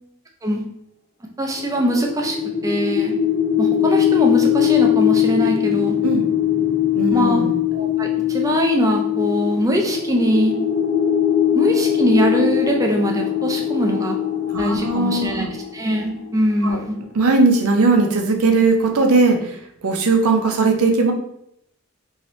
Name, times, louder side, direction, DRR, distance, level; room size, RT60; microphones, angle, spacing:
voice 1, 1.4-2.4 2.6-3.1 3.6-5.9 7.1-7.4 7.7-10.5 11.5-14.2 14.6-17.0, right 1 dB, 15° right, 1 dB, 0.4 m, -22 dB
sound 1, 1.5-16.6, left 10 dB, 45° left, 0.7 m, -21 dB
voice 2, 6.9-7.6 14.5-15.4 16.6-16.8 17.1-19.6 19.8-21.1, right 3 dB, 80° right, 4 dB, 0.6 m, -18 dB
2.8 x 2.7 x 3.1 m, 0.76 s
head